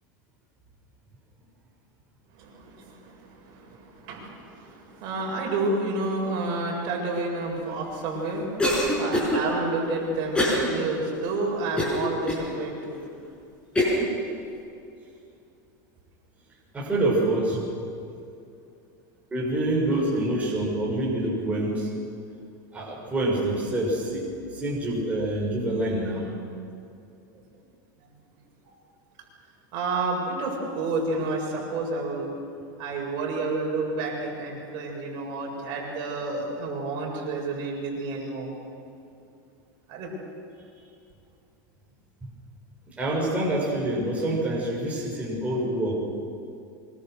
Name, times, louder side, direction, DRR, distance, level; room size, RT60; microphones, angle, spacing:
voice 1, 2.3-13.0 28.0-28.1 29.7-32.3 32.8-38.5 39.9-40.1, right 3 dB, 50° right, -1 dB, 7.7 m, -30 dB
Cough, 8.6-9.4 10.3-10.7 11.1-11.2 11.8-12.4 13.0-13.1 13.8-14.1, left 1 dB, 10° left, 6.9 m, -23 dB
voice 2, 16.7-17.6 19.3-21.9 22.7-24.2 24.5-26.3 42.2-42.3 43.0-46.0, right 1 dB, 15° right, -4 dB, 6.5 m, -26 dB
25.0 x 24.5 x 6.6 m, 2.6 s
supercardioid pair, 140°, 10 cm